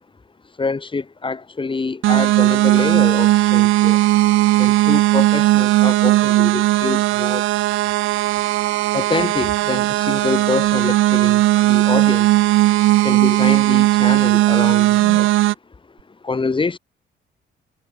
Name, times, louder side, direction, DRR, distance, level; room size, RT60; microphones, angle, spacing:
voice 1, 0.6-4.0 4.6-7.5 8.9-12.4 13.0-15.3 16.2-16.8, left 4 dB, 25° left, 2.3 m, -26 dB
sound 1, 2.0-15.5, right 16 dB, 90° right, 1.8 m, -16 dB
cardioid pair, 90°, 20 cm